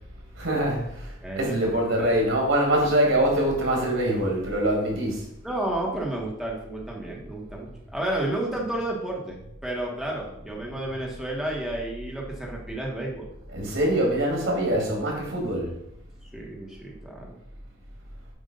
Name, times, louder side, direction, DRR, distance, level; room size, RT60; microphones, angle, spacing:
voice 1, 0.4-5.2 13.5-15.7, right 1 dB, 90° right, -1 dB, 2.2 m, -24 dB
voice 2, 1.2-2.1 5.4-13.3 16.3-17.4, right 1 dB, ahead, -3 dB, 1.3 m, -31 dB
7.6 x 2.8 x 5.3 m, 0.80 s
head